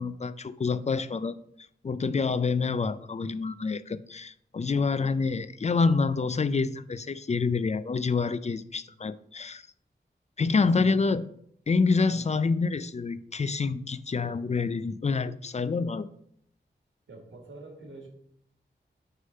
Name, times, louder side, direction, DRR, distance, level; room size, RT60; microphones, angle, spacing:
voice 1, 0.0-1.4 1.8-9.7 10.4-11.3 11.7-16.1, left 4 dB, 35° left, 14 dB, 0.4 m, -27 dB
voice 2, 10.4-11.2 12.1-12.3 17.1-18.1, right 2 dB, 85° right, 1 dB, 1.7 m, -46 dB
6.5 x 3.7 x 5.4 m, 0.70 s
wide cardioid pair, 70°, 19 cm